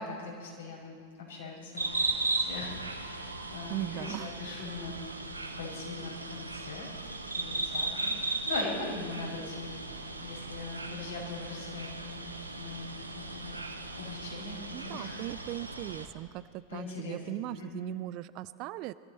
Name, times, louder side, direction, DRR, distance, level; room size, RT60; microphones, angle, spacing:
voice 1, 0.0-5.2 5.6-9.7 10.2-15.2 16.7-17.9, left 3 dB, 65° left, -3 dB, 5.6 m, -41 dB
sound 1, 1.8-16.1, right 2 dB, 80° right, 1.1 m, -37 dB
voice 2, 3.7-4.3 14.7-18.9, right 17 dB, 40° right, 16 dB, 0.4 m, -38 dB
22.5 x 14.0 x 4.3 m, 2.2 s
figure-of-eight pair, 90°, 0 cm